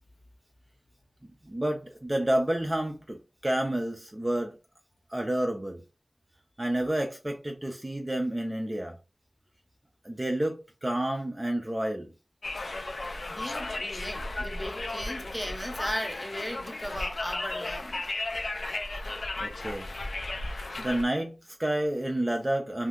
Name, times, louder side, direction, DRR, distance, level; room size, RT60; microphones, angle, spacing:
voice 1, 1.2-3.2 3.4-4.6 5.1-5.8 6.6-9.0 10.0-12.1 19.4-19.9 20.8-22.9, right 1 dB, 20° right, 0.5 m, -29 dB
Conversation, 12.4-21.0, left 2 dB, 60° left, 0.5 m, -35 dB
voice 2, 13.3-18.0, equal, 10° left, 0.8 m, -36 dB
2.6 x 2.3 x 3.5 m
wide cardioid pair, 85°, 0 cm